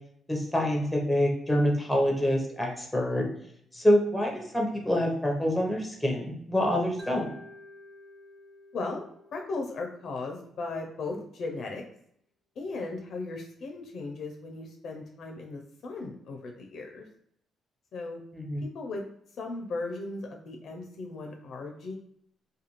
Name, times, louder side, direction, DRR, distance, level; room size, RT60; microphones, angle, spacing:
voice 1, 0.3-3.3 3.7-7.3 18.3-18.6, equal, 5° left, 0 dB, 0.8 m, -26 dB
Mallet percussion, 7.0-11.1, left 1 dB, 20° right, 0.3 m, -52 dB
voice 2, 8.7-9.1 9.3-11.8 12.6-17.1 17.9-18.2 18.6-19.0 19.4-22.0, left 3 dB, 65° left, 1 dB, 0.5 m, -37 dB
2.5 x 2.3 x 3.0 m, 0.69 s
cardioid pair, 95°, 0 cm